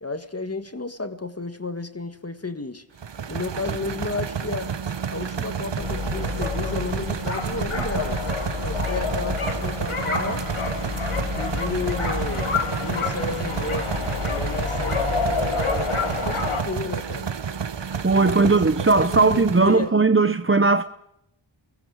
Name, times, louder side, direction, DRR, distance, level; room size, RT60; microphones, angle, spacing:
voice 1, 0.0-2.8 3.3-4.7 5.1-8.2 8.6-10.5 11.2-12.5 12.8-13.9 14.3-17.3 18.1-18.6 19.0-19.9, left 3 dB, 30° left, 1.8 m, -32 dB
sound 1, 3.0-19.9, right 7 dB, 60° right, 1.1 m, -30 dB
sound 2, 5.8-16.6, left 4 dB, 85° left, 4.9 m, -28 dB
voice 2, 18.0-20.8, right 3 dB, 25° right, 0.8 m, -18 dB
30.0 x 22.5 x 5.0 m
wide cardioid pair, 90°, 49 cm